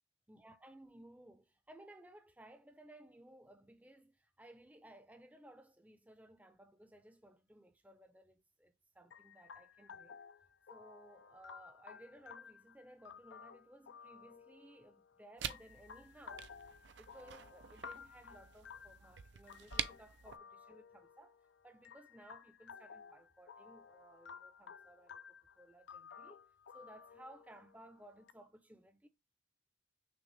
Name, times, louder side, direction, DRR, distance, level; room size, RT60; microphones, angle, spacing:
voice 1, 0.3-10.2 10.7-16.5 17.0-21.4 21.6-26.5 26.7-29.1, right 1 dB, 10° right, 0.6 m, -59 dB
sound 1, 9.1-28.3, left 6 dB, 70° left, 0.4 m, -55 dB
sound 2, 15.4-20.4, right 9 dB, 60° right, 0.4 m, -46 dB
6.2 x 2.3 x 3.2 m
head